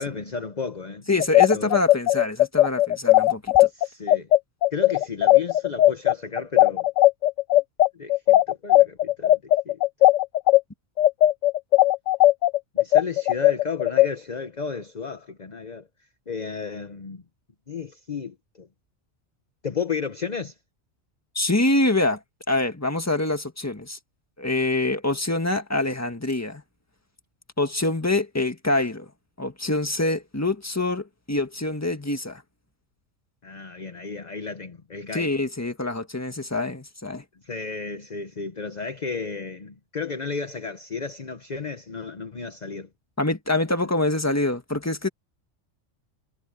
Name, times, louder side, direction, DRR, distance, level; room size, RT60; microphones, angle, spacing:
voice 1, 0.0-1.1 1.5-1.8 3.7-4.3 4.7-6.9 7.9-9.8 12.7-15.9 16.3-17.2 17.7-18.7 19.6-20.5 33.4-35.4 37.4-42.9, left 5 dB, 35° left, 1.1 m, -33 dB
voice 2, 1.1-3.7 21.3-22.2 22.5-24.0 24.4-26.6 27.6-29.1 29.4-32.4 35.1-37.2 43.2-45.1, left 2 dB, 10° left, 1.7 m, -25 dB
sound 1, 1.2-10.6 11.0-14.1, left 15 dB, 85° left, 1.0 m, -17 dB
omnidirectional pair, 1.3 m